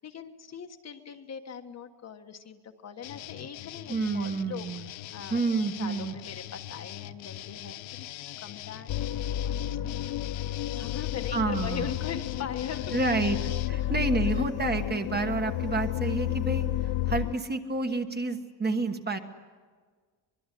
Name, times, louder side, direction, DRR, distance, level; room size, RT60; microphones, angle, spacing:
voice 1, 0.0-5.4 5.8-8.1 8.4-10.0 10.3-10.4 10.8-13.4 13.7-14.0 14.3-14.4, left 7 dB, 35° left, 6 dB, 1.4 m, -41 dB
sound 1, 3.0-13.7, left 14 dB, 75° left, 1.0 m, -42 dB
voice 2, 3.9-4.9 5.3-6.1 11.3-11.9 12.9-13.4 13.7-19.2, right 3 dB, 20° right, 6 dB, 1.4 m, -29 dB
sound 2, 8.9-17.4, left 13 dB, 55° left, 0.7 m, -31 dB
24.5 x 22.5 x 10.0 m, 1.5 s
cardioid pair, 175°, 46 cm